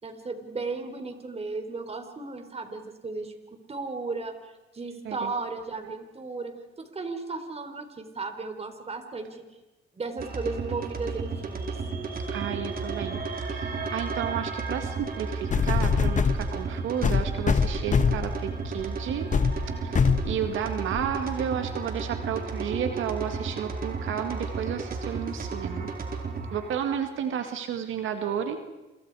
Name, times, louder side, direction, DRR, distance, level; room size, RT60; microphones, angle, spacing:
voice 1, 0.0-9.4 9.9-11.8, right 3 dB, 30° right, 6 dB, 4.2 m, -35 dB
sound 1, 10.2-26.8, right 4 dB, 45° right, 4.2 m, -33 dB
voice 2, 12.3-13.2 13.5-19.3 19.8-25.9 26.5-28.6, right 8 dB, 80° right, 7 dB, 1.9 m, -32 dB
sound 2, 15.0-15.1 15.5-16.4 17.0-18.3 18.8-18.9 19.3-19.5 19.9-20.3 21.0-21.1, left 5 dB, 40° left, 1.7 m, -22 dB
29.0 x 27.5 x 4.9 m, 1.1 s
cardioid pair, 90°, 20 cm